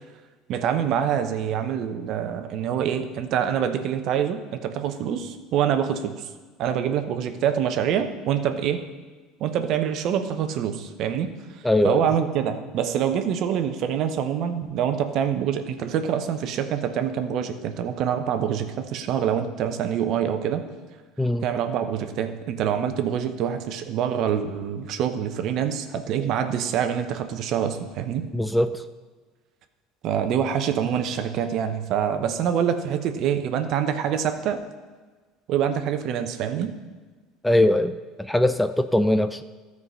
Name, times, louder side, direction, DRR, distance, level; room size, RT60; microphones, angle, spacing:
voice 1, 0.5-6.3 6.6-8.8 9.4-11.3 11.8-20.6 21.4-28.3 30.0-34.6 35.5-36.7, right 8 dB, 60° right, 8 dB, 0.9 m, -25 dB
voice 2, 11.6-12.0 21.2-21.5 28.3-28.8 37.4-39.4, left 1 dB, 5° left, 11 dB, 0.4 m, -21 dB
13.5 x 4.8 x 5.5 m, 1.4 s
supercardioid pair, 95°, 0 cm